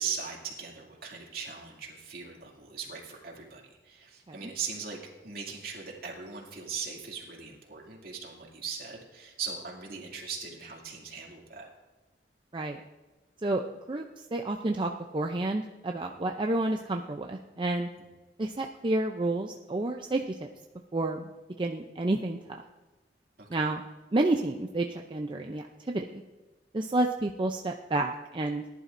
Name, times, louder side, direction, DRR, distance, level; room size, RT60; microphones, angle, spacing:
voice 1, 0.0-5.0 5.2-11.7 18.0-18.1 23.4-23.6, right 6 dB, 55° right, -1 dB, 2.5 m, -39 dB
voice 2, 13.9-17.9 18.4-20.5 20.9-21.3 21.6-22.6 23.5-23.8 24.1-26.2 26.7-28.6, right 2 dB, 30° right, 3 dB, 0.5 m, -30 dB
19.0 x 11.0 x 2.6 m, 1.2 s
head